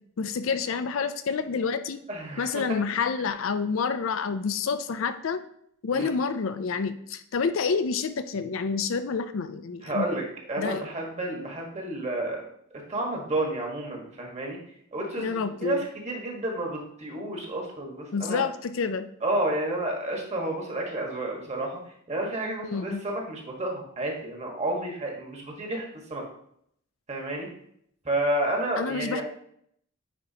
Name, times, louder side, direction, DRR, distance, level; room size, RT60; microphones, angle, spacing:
voice 1, 0.2-2.0 2.4-5.4 5.8-10.1 10.6-10.9 15.2-15.8 18.1-19.1 22.6-23.0 28.8-29.2, left 5 dB, 65° left, 11 dB, 0.4 m, -28 dB
voice 2, 2.1-2.8 5.9-6.1 9.8-12.4 12.9-14.6 14.9-18.4 19.2-21.8 22.1-26.2 27.1-27.5 28.0-29.2, right 1 dB, 30° right, 0 dB, 1.5 m, -30 dB
9.2 x 4.5 x 2.8 m, 0.69 s
head